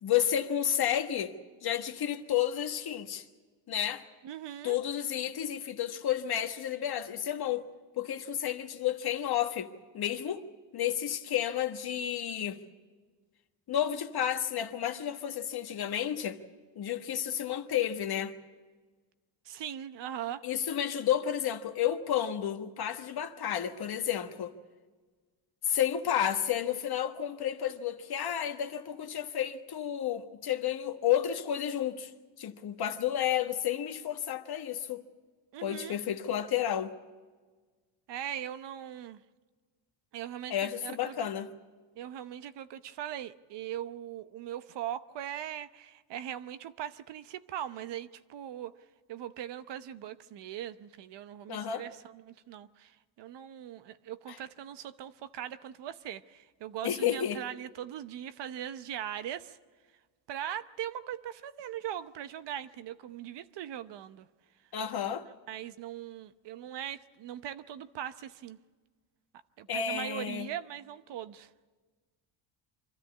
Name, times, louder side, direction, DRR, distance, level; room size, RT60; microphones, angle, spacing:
voice 1, 0.0-1.3 1.6-3.2 3.7-4.0 4.6-7.7 7.9-9.7 9.9-10.4 10.7-12.6 13.7-16.4 16.7-18.3 20.4-24.5 25.6-32.1 32.4-35.0 35.6-36.9 40.5-41.5 51.5-51.8 56.8-57.4 64.7-65.2 69.7-70.5, left 10 dB, 50° left, 1.4 m, -31 dB
voice 2, 4.2-4.8 19.4-20.4 35.5-36.0 38.1-39.2 40.1-41.3 42.0-48.8 49.1-59.6 60.3-64.3 65.0-65.1 65.5-68.6 69.6-71.5, right 11 dB, 55° right, 0.9 m, -40 dB
25.0 x 13.5 x 8.5 m
cardioid pair, 115°, 50 cm